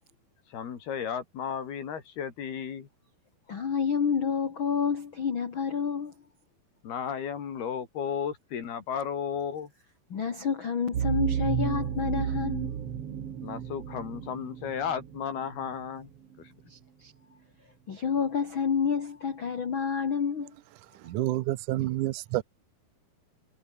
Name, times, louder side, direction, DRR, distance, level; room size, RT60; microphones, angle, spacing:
voice 1, 0.5-2.9 6.8-9.7 13.4-16.1, left 7 dB, 65° left, 5.0 m, -34 dB
voice 2, 3.5-6.1 10.1-12.7 16.7-17.1 17.9-20.5, left 6 dB, 40° left, 1.9 m, -29 dB
sound 1, 10.9-15.7, right 9 dB, 50° right, 1.9 m, -32 dB
voice 3, 21.0-22.4, right 15 dB, 75° right, 1.8 m, -28 dB
omnidirectional pair, 5.0 m